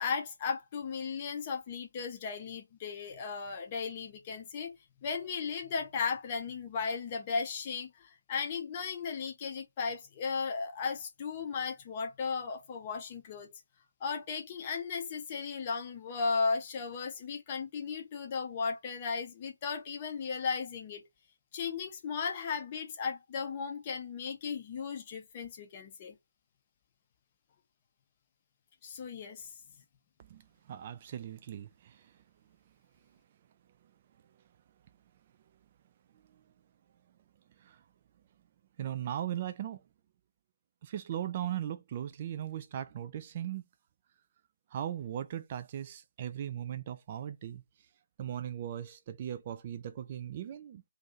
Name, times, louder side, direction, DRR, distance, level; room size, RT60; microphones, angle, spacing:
voice 1, 0.0-4.7 5.0-13.6 14.0-21.1 21.5-26.2 28.8-29.5, left 5 dB, 20° left, 0.6 m, -36 dB
voice 2, 30.3-32.1 36.3-36.4 37.6-37.8 38.8-39.8 40.8-43.6 44.7-47.6 48.2-50.8, right 10 dB, 20° right, 0.3 m, -38 dB
2.6 x 2.6 x 4.2 m
figure-of-eight pair, 155°, 0 cm